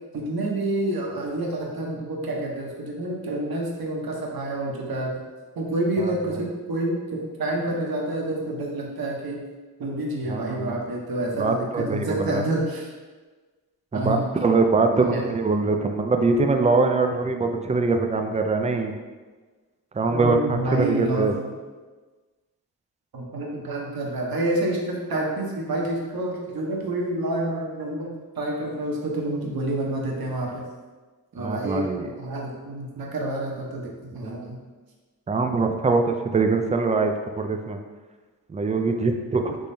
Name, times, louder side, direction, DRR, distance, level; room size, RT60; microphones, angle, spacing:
voice 1, 0.1-5.2 5.6-9.4 9.8-12.9 13.9-14.3 14.9-15.3 20.1-21.5 23.1-28.1 28.4-30.7 31.3-31.9 32.2-34.6, right 1 dB, 55° right, -1 dB, 0.9 m, -28 dB
voice 2, 10.3-10.8 11.4-12.4 13.9-14.2 14.4-18.9 19.9-21.3 31.4-32.1 35.3-37.8 38.5-39.6, right 3 dB, 20° right, 5 dB, 0.4 m, -23 dB
3.7 x 3.1 x 2.6 m, 1.3 s
supercardioid pair, 40°, 42 cm